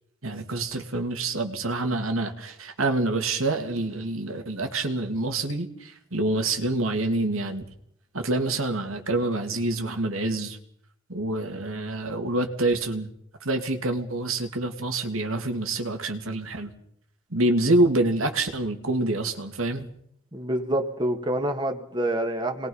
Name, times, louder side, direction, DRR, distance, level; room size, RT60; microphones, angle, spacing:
voice 1, 0.2-7.6 8.1-10.6 11.1-13.1 13.4-16.7 17.3-19.9, right 2 dB, 85° right, 5 dB, 2.8 m, -26 dB
voice 2, 20.3-22.7, right 1 dB, 20° right, 4 dB, 2.1 m, -27 dB
27.5 x 21.0 x 5.7 m, 0.66 s
head